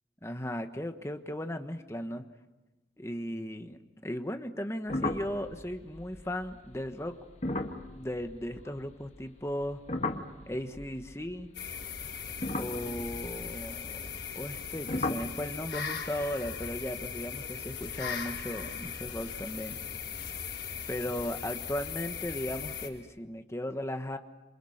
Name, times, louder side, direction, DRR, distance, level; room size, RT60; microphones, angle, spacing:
voice 1, 0.2-2.3 3.0-7.1 7.9-9.8 10.5-11.5 12.6-14.1 14.3-19.8 20.9-24.2, equal, 15° left, 7 dB, 1.4 m, -36 dB
sound 1, 4.9-9.2 9.5-11.7 12.3-14.6 14.9-15.4, left 2 dB, 40° left, 1.7 m, -37 dB
sound 2, 11.5-22.9, left 6 dB, 90° left, 5.1 m, -39 dB
28.0 x 27.5 x 6.7 m, 1.1 s
head